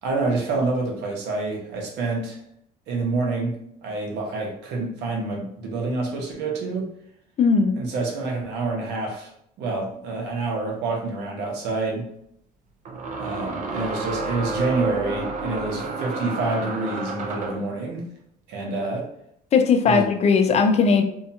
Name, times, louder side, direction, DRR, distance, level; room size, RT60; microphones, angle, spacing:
voice 1, 0.0-2.4 2.9-6.9 7.7-9.3 9.6-12.1 13.2-18.1 18.5-19.1 19.8-20.1, right 3 dB, 85° right, 0 dB, 0.8 m, -27 dB
voice 2, 7.4-7.7 19.5-21.0, left 5 dB, 40° left, 6 dB, 0.4 m, -18 dB
sound 1, 10.9-11.0 12.9-17.7, right 3 dB, 50° right, 0.5 m, -30 dB
2.7 x 2.2 x 2.6 m, 0.73 s
cardioid pair, 110°, 17 cm